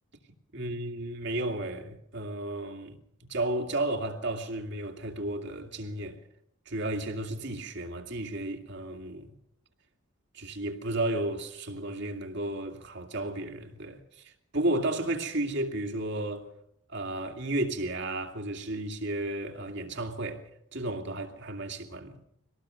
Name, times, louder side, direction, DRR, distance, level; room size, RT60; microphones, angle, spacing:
voice 1, 0.5-2.9 3.3-6.2 6.7-9.4 10.3-16.5 16.9-22.2, right 1 dB, 55° right, 2.4 m, -33 dB
24.5 x 19.0 x 6.4 m
head